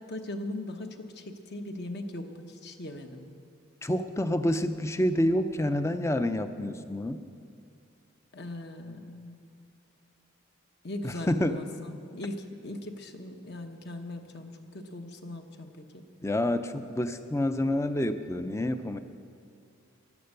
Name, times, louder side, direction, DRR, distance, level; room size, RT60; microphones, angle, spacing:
voice 1, 0.0-3.3 8.3-9.5 10.8-16.1, left 1 dB, 50° left, 5 dB, 1.1 m, -39 dB
voice 2, 3.8-7.2 11.0-11.6 16.2-19.0, left 1 dB, 15° left, 10 dB, 0.5 m, -28 dB
15.5 x 11.5 x 6.7 m, 2.4 s
head